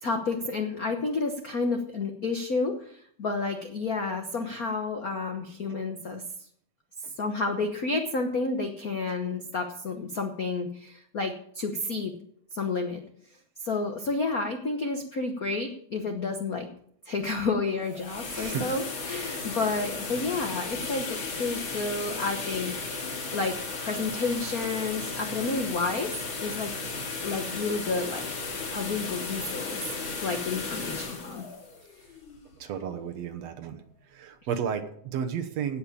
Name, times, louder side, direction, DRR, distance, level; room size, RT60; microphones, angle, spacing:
voice 1, 0.0-6.2 7.2-12.1 12.5-13.0 13.6-16.7 17.0-22.9 23.3-23.5 23.8-26.1 26.4-26.7 27.2-28.3 28.7-31.4, left 3 dB, 85° left, 4 dB, 0.8 m, -30 dB
sound 1, 17.7-32.6, left 4 dB, 40° left, 3.0 m, -35 dB
voice 2, 18.3-18.7 32.6-33.8 34.1-35.8, right 8 dB, 65° right, 7 dB, 2.1 m, -33 dB
17.0 x 5.8 x 8.7 m, 0.67 s
omnidirectional pair, 3.5 m